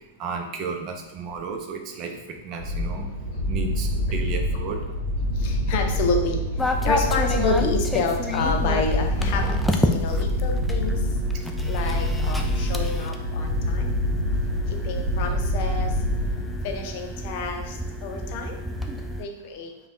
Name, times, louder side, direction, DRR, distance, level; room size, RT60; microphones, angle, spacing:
voice 1, 0.2-3.1 3.5-4.8, right 4 dB, 40° right, 4 dB, 0.6 m, -33 dB
sound 1, 2.6-16.8, left 1 dB, 70° right, 1.0 m, -26 dB
voice 2, 5.4-6.4 6.8-9.5 9.9-11.0 11.7-13.9 14.8-15.9 16.6-17.7 18.0-18.5 19.2-19.7, left 4 dB, 50° left, 4 dB, 0.6 m, -28 dB
sound 2, 6.6-19.2, equal, 5° left, 0.4 m, -30 dB
5.1 x 2.3 x 2.6 m, 0.95 s
figure-of-eight pair, 100°, 0 cm